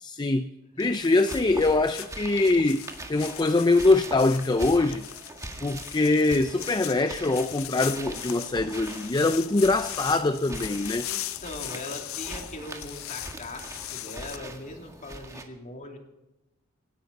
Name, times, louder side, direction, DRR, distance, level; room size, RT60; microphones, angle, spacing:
voice 1, 0.0-0.5 0.8-5.1 5.6-11.1, left 2 dB, 20° left, 0.5 m, -23 dB
voice 2, 0.8-1.1 11.0-16.0, left 2 dB, 40° left, 2.8 m, -40 dB
sound 1, 0.8-15.4, right 1 dB, 15° right, 1.8 m, -42 dB
sound 2, 1.0-14.4, left 14 dB, 75° left, 0.6 m, -39 dB
26.5 x 11.0 x 4.1 m
head